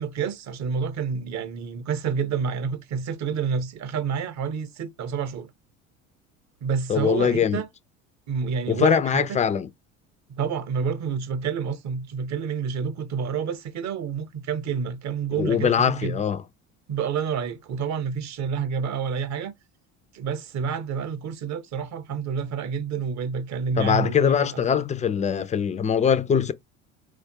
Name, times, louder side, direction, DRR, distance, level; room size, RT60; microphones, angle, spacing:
voice 1, 0.0-5.5 6.6-7.7 8.3-9.4 10.3-16.2 16.9-19.5 20.1-24.6, right 6 dB, 45° right, 0.9 m, -28 dB
voice 2, 6.9-7.6 8.7-9.7 15.4-16.4 23.8-26.5, left 8 dB, 20° left, 0.3 m, -22 dB
4.3 x 2.3 x 2.7 m
hypercardioid pair, 70°, 40 cm